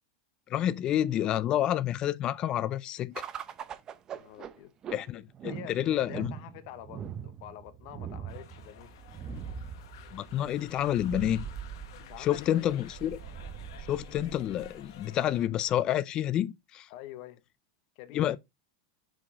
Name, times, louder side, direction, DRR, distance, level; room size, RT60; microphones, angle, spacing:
voice 1, 0.5-3.2 4.9-6.3 10.1-11.5 12.2-13.2 13.9-16.9 18.1-18.4, left 11 dB, 35° left, 0.4 m, -29 dB
sound 1, 3.1-15.8, right 8 dB, 30° right, 0.6 m, -42 dB
voice 2, 4.1-4.7 5.1-8.9 12.0-12.8 16.9-17.4 18.0-18.3, left 13 dB, 55° left, 0.9 m, -47 dB
sound 2, 8.3-15.4, left 9 dB, 75° left, 1.3 m, -53 dB
5.8 x 4.9 x 3.7 m
supercardioid pair, 135°, 2 cm